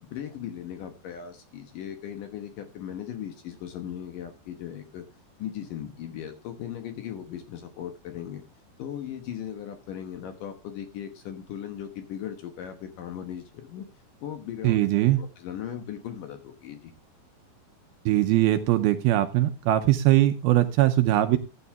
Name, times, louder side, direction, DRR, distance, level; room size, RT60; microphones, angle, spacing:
voice 1, 0.0-5.0 5.4-8.4 8.8-13.9 14.2-14.8 15.2-16.9, left 10 dB, 65° left, 7 dB, 2.3 m, -38 dB
voice 2, 14.6-15.2 18.1-21.4, right 14 dB, 80° right, 9 dB, 2.4 m, -21 dB
14.0 x 9.5 x 3.5 m, 0.29 s
omnidirectional pair, 4.9 m